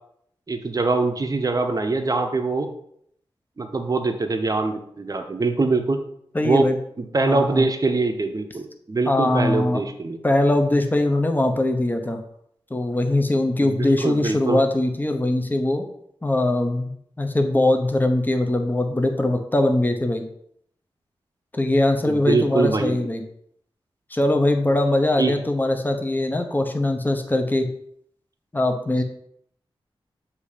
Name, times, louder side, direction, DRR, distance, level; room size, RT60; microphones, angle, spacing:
voice 1, 0.5-2.7 3.6-6.0 6.4-6.7 7.0-10.2 13.6-14.6 22.1-23.1 25.2-25.3, right 3 dB, 40° right, 6 dB, 0.7 m, -23 dB
voice 2, 6.3-6.8 7.2-7.6 9.1-9.9 10.2-12.2 12.7-15.9 16.2-20.2 21.5-23.2 24.1-27.7 28.5-29.0, left 1 dB, 20° left, 5 dB, 0.9 m, -21 dB
6.9 x 2.8 x 5.0 m, 0.69 s
cardioid pair, 65°, 10 cm